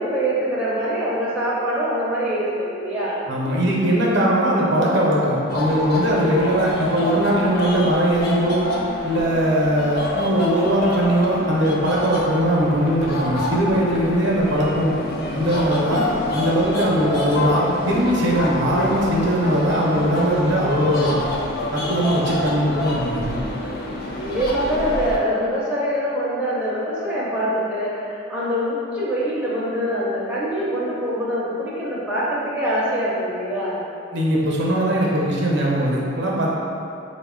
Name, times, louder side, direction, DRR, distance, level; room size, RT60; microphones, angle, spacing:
voice 1, 0.0-3.2 24.1-33.8, equal, 5° right, -9 dB, 0.5 m, -24 dB
voice 2, 3.3-8.7 9.0-14.9 15.3-16.0 16.3-21.2 21.7-23.4 34.1-36.5, equal, 60° right, -4 dB, 0.6 m, -20 dB
sound 1, 5.5-25.2, left 2 dB, 50° left, 0.4 m, -27 dB
3.7 x 2.1 x 3.6 m, 2.7 s
head